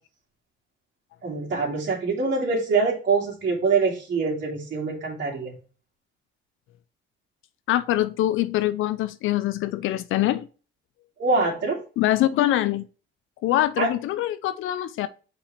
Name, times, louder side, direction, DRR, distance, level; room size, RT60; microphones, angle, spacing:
voice 1, 1.2-5.6 11.2-11.8 13.8-13.9, right 4 dB, 55° right, 2.8 m, -24 dB
voice 2, 7.7-10.5 12.0-12.9 13.4-15.1, left 14 dB, 85° left, 0.6 m, -24 dB
5.8 x 4.8 x 4.1 m
cardioid pair, 90°, 20 cm